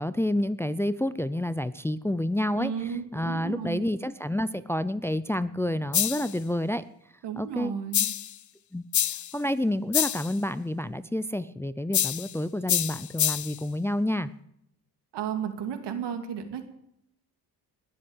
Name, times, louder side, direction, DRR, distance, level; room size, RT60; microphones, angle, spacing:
voice 1, 0.0-6.8 7.4-7.7 8.7-8.8 9.3-14.3, left 1 dB, 5° left, 14 dB, 0.5 m, -29 dB
voice 2, 2.5-3.8 7.2-8.1 15.1-16.7, right 8 dB, 85° right, 7 dB, 2.7 m, -33 dB
sound 1, 5.9-6.4 7.9-8.4 8.9-9.4 9.9-10.3 11.9-12.3 12.7-13.6, left 11 dB, 45° left, 0.8 m, -26 dB
20.0 x 7.8 x 9.0 m, 0.76 s
cardioid pair, 110°, 41 cm